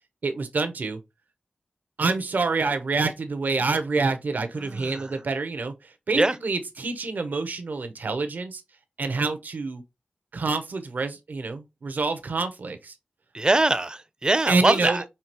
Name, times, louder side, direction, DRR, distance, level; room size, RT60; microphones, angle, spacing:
voice 1, 0.2-1.0 2.0-8.6 9.0-9.8 10.3-12.9 14.4-15.0, right 3 dB, 75° right, 0.8 m, -27 dB
voice 2, 4.6-5.0 6.1-6.3 13.3-15.0, right 2 dB, 25° right, 0.5 m, -23 dB
5.7 x 2.9 x 2.9 m
cardioid pair, 50°, 3 cm